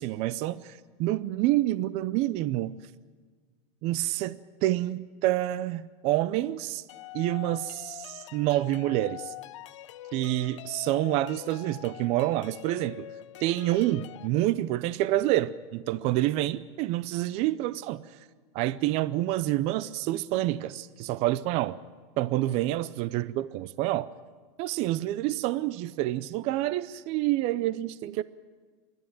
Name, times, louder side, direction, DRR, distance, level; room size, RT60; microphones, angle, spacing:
voice 1, 0.0-2.8 3.8-6.8 7.1-9.3 10.1-13.0 13.4-18.2 18.5-21.8 22.2-24.1 24.6-28.2, right 15 dB, 40° right, 17 dB, 0.5 m, -28 dB
sound 1, 6.9-14.3, left 13 dB, 80° left, 0.7 m, -44 dB
27.5 x 12.0 x 9.0 m, 1.5 s
supercardioid pair, 140°, 16 cm